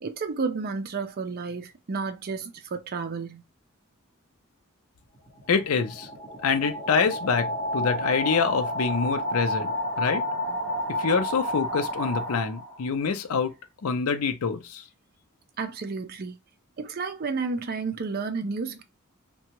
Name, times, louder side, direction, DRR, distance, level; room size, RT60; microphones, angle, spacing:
voice 1, 0.0-3.4 15.6-16.4 16.8-18.8, right 4 dB, 45° right, 0.5 m, -31 dB
sound 1, 5.1-12.9, equal, 15° left, 1.0 m, -30 dB
voice 2, 5.5-6.1 6.4-9.7 10.0-10.2 11.0-13.5 13.8-14.8, left 5 dB, 80° left, 0.5 m, -26 dB
2.7 x 2.2 x 2.9 m
head